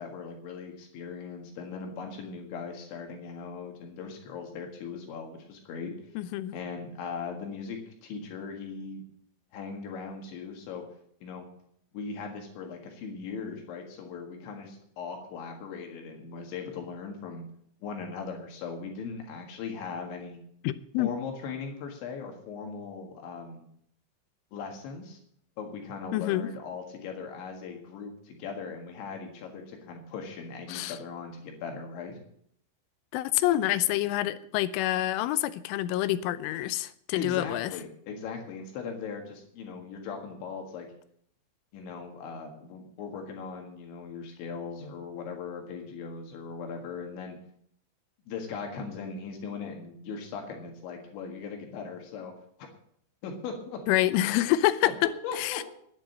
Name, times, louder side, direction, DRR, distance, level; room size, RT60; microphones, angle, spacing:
voice 1, 0.0-5.9 6.5-9.0 9.5-10.8 11.2-11.5 11.9-17.4 17.8-20.4 21.0-23.6 24.5-25.2 25.6-32.2 37.1-40.9 41.7-47.4 48.3-52.3 53.2-53.8 54.8-55.6, left 5 dB, 75° left, 4.0 m, -39 dB
voice 2, 6.2-6.6 20.6-21.1 26.1-26.5 30.7-31.0 33.1-37.7 53.9-55.0 55.4-55.6, left 14 dB, 90° left, 3.2 m, -27 dB
10.5 x 8.8 x 8.6 m
omnidirectional pair, 5.5 m